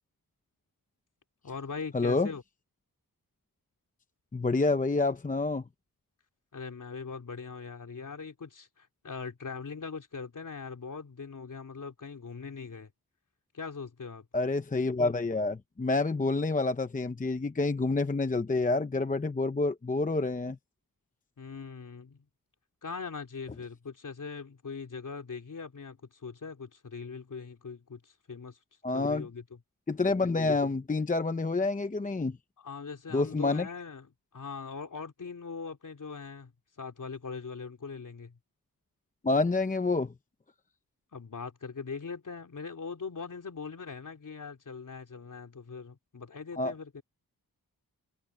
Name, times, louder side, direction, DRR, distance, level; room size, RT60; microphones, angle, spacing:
voice 1, 1.4-2.4 6.5-12.9 13.5-14.2 21.4-22.3 22.8-28.6 28.9-29.6 32.6-36.5 36.8-38.4 41.1-47.0, left 5 dB, 55° left, 3.2 m, -41 dB
voice 2, 1.9-2.3 4.3-5.6 14.3-20.6 28.8-29.3 29.9-32.4 33.1-33.7 39.2-40.1 46.6-46.7, left 3 dB, 20° left, 0.8 m, -28 dB
wide cardioid pair, 155°, 38 cm